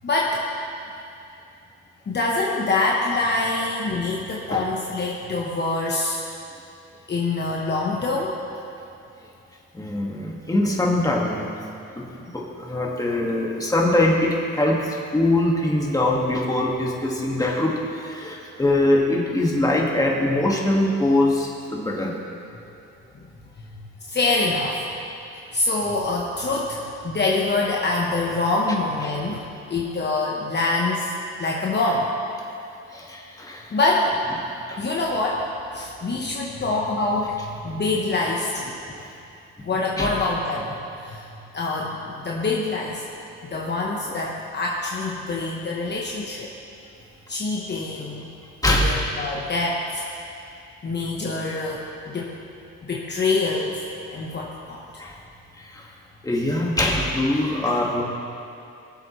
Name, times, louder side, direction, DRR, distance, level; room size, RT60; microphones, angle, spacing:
voice 1, 0.0-0.4 2.1-6.2 7.1-8.4 23.8-24.8 25.5-31.1 31.4-32.1 33.7-34.1 34.8-35.5 35.7-37.4 37.6-38.7 39.6-41.3 41.5-43.0 43.5-46.5 47.3-48.3 48.7-50.0 50.8-52.3 52.9-53.8 54.1-54.8, left 2 dB, 35° left, -3 dB, 1.2 m, -25 dB
voice 2, 9.7-11.5 12.0-22.1 29.0-29.2 32.9-33.8 34.7-34.8 39.0-39.1 40.0-40.1 48.6-49.0 55.0-55.2 55.6-55.9 56.2-58.0, left 1 dB, 10° left, -3 dB, 1.9 m, -23 dB
19.5 x 7.7 x 3.2 m, 2.6 s
cardioid pair, 90°, 30 cm